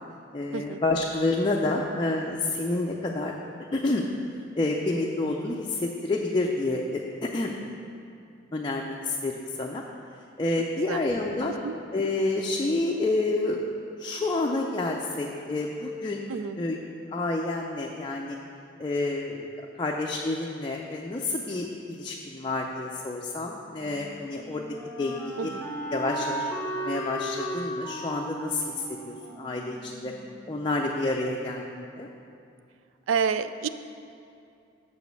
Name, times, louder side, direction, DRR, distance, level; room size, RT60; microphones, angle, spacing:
voice 1, 0.3-3.3 3.7-4.0 4.6-7.5 8.5-9.8 10.4-11.5 11.9-13.6 14.0-16.8 17.1-18.4 18.8-19.5 19.8-24.6 25.0-25.5 25.9-26.5 26.8-28.7 29.1-30.1 30.5-32.1, left 2 dB, 25° left, -1 dB, 0.4 m, -29 dB
voice 2, 16.3-16.6 25.3-25.7 33.1-33.7, right 6 dB, 80° right, 12 dB, 0.3 m, -29 dB
Wind instrument woodwind instrument, 23.8-30.7, right 1 dB, 10° left, 0.9 m, -36 dB
6.9 x 5.0 x 6.6 m, 2.6 s
head